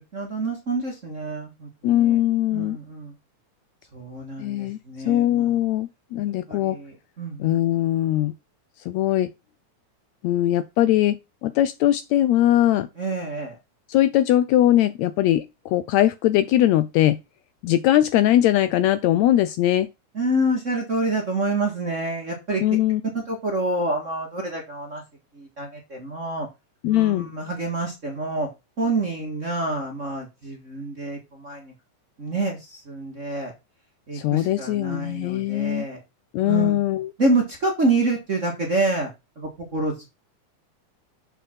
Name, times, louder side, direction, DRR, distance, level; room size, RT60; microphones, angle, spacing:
voice 1, 0.1-2.2 2.5-3.1 3.9-5.6 6.5-7.5 13.0-13.5 20.1-22.6 23.1-25.0 25.3-26.5 26.9-28.5 28.8-31.7 32.2-33.5 34.1-36.0 36.4-36.8 37.2-39.1 39.4-40.1, right 2 dB, 35° right, 1.3 m, -27 dB
voice 2, 1.8-2.8 4.4-4.8 5.1-6.8 7.4-8.3 8.9-9.3 10.2-12.9 13.9-17.2 17.6-19.9 22.6-23.0 26.8-27.3 34.1-35.9 36.3-37.1, left 13 dB, 80° left, 1.7 m, -21 dB
7.3 x 5.6 x 4.4 m
omnidirectional pair, 3.5 m